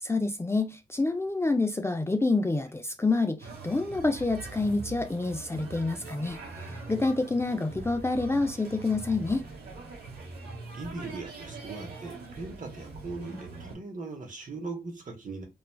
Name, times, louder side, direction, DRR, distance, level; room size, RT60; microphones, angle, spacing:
voice 1, 0.0-6.4 6.9-9.4, left 3 dB, 15° left, 0.4 m, -27 dB
sound 1, 3.4-13.7, right 3 dB, 80° right, 0.9 m, -42 dB
voice 2, 6.8-7.1 10.7-15.5, right 3 dB, 55° right, 0.9 m, -39 dB
3.0 x 2.3 x 2.2 m
supercardioid pair, 45°, 16 cm